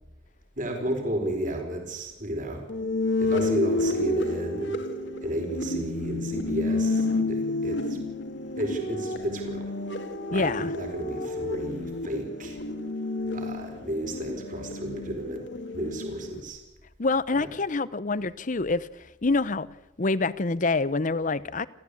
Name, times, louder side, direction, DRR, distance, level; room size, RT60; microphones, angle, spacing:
voice 1, 0.5-2.6 3.2-4.7 5.2-8.0 8.6-9.7 10.3-12.6 13.3-15.5 15.7-16.6 17.4-17.5, right 1 dB, 45° right, 4.7 m, -32 dB
sound 1, 2.7-16.4, left 2 dB, 75° left, 2.1 m, -30 dB
voice 2, 10.3-10.7 17.0-19.7 20.0-21.7, left 3 dB, 45° left, 0.7 m, -26 dB
29.5 x 13.0 x 8.5 m
head